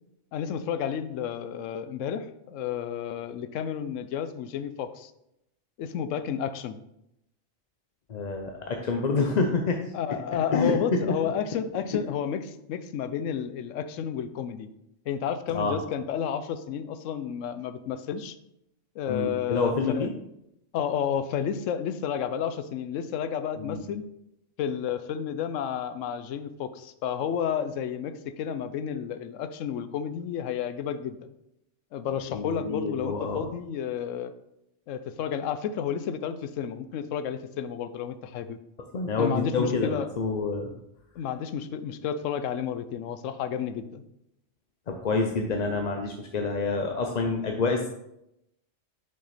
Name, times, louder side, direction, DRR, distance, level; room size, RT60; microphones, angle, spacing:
voice 1, 0.3-5.1 5.8-6.8 9.9-14.7 15.1-18.4 19.0-20.1 20.7-24.0 24.6-31.3 31.9-34.3 34.9-38.6 39.2-40.1 41.2-44.0, left 8 dB, 90° left, 11 dB, 1.0 m, -31 dB
voice 2, 8.1-9.8 10.5-11.3 11.9-12.0 15.5-15.7 19.1-20.1 23.6-23.8 32.3-33.5 38.9-40.7 44.9-47.9, left 3 dB, 45° left, 3 dB, 0.6 m, -27 dB
6.2 x 5.8 x 4.1 m, 0.82 s
omnidirectional pair, 1.3 m